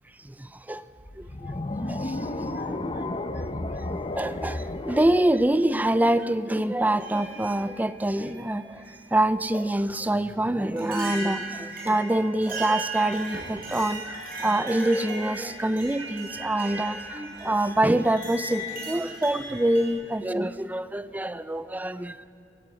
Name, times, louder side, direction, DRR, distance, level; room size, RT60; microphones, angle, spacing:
voice 1, 0.2-0.8 1.2-1.3 1.9-2.8 4.2-22.3, right 1 dB, 10° right, 0.5 m, -26 dB
sound 1, 0.9-1.8 2.9-3.0 4.0-4.3 4.9-5.1 5.7-5.9 7.0-7.7 8.2-8.9 10.1-10.2 10.8-19.9, right 2 dB, 55° right, 6.8 m, -37 dB
sound 2, 1.2-6.5, left 2 dB, 30° left, 0.9 m, -33 dB
23.0 x 14.5 x 8.6 m
head